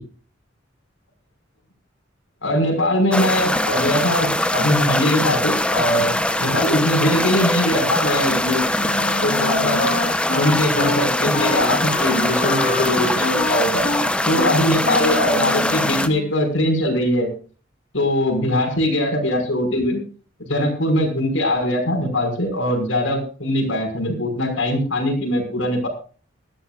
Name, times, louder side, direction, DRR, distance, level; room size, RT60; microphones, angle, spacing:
voice 1, 2.4-6.1 6.4-8.6 9.2-9.9 10.4-13.9 14.3-17.3 17.9-20.0 20.4-25.9, left 1 dB, 90° left, 2 dB, 5.7 m, -21 dB
sound 1, 3.1-16.1, left 1 dB, 5° left, 0.8 m, -22 dB
Wind instrument woodwind instrument, 8.8-16.3, left 3 dB, 50° left, 1.5 m, -27 dB
20.5 x 13.5 x 2.5 m, 0.38 s
head